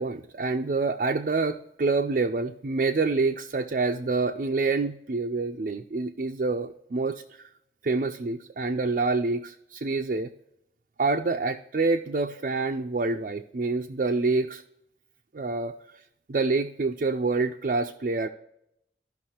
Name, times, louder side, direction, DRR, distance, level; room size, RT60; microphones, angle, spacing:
voice 1, 0.0-7.4 7.8-10.3 11.0-14.6 15.3-16.0 16.3-18.3, right 3 dB, 50° right, 4 dB, 0.4 m, -27 dB
15.0 x 5.8 x 2.9 m, 0.78 s
head